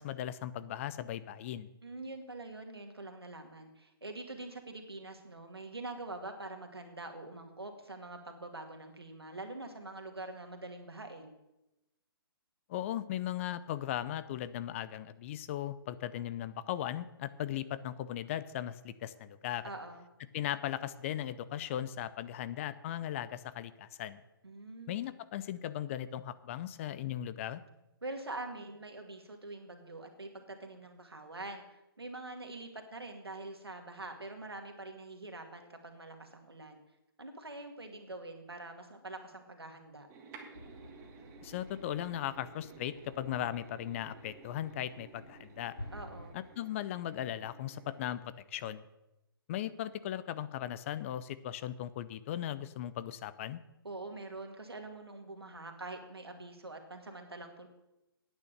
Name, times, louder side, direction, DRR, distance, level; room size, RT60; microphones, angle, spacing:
voice 1, 0.0-1.7 12.7-19.6 20.3-24.2 24.9-27.6 41.4-45.7 46.3-48.8 49.5-53.6, left 11 dB, 35° left, 15 dB, 0.6 m, -38 dB
voice 2, 1.8-11.3 19.6-20.0 24.4-24.9 28.0-36.8 37.2-40.1 45.9-46.4 53.8-57.7, right 2 dB, 85° right, 4 dB, 2.3 m, -45 dB
sound 1, 40.1-48.2, right 5 dB, 20° right, 1.6 m, -55 dB
sound 2, 40.5-46.3, left 1 dB, 80° left, 4.2 m, -52 dB
9.7 x 9.4 x 6.7 m, 0.93 s
figure-of-eight pair, 135°, 13 cm